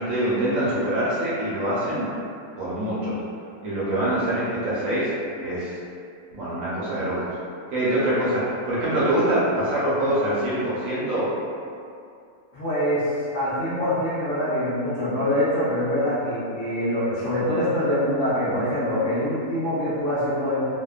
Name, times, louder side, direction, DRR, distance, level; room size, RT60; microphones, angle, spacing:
voice 1, 0.0-2.1 2.6-3.2 3.6-5.1 5.4-5.7 6.3-7.3 7.7-11.3, right 1 dB, 65° right, -8 dB, 0.9 m, -24 dB
voice 2, 12.5-20.7, left 1 dB, 60° left, -10 dB, 0.9 m, -24 dB
2.7 x 2.2 x 2.3 m, 2.4 s
omnidirectional pair, 1.7 m